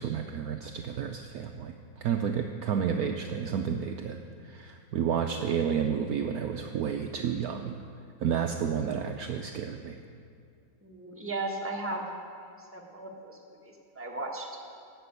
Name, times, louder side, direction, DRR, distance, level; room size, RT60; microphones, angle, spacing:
voice 1, 0.0-4.2 4.4-7.8 8.2-10.0, right 7 dB, 75° right, 5 dB, 0.8 m, -31 dB
voice 2, 10.8-12.0 12.7-13.4 13.6-14.5, right 2 dB, 10° right, -1 dB, 1.2 m, -36 dB
15.0 x 6.1 x 8.2 m, 2.3 s
omnidirectional pair, 2.2 m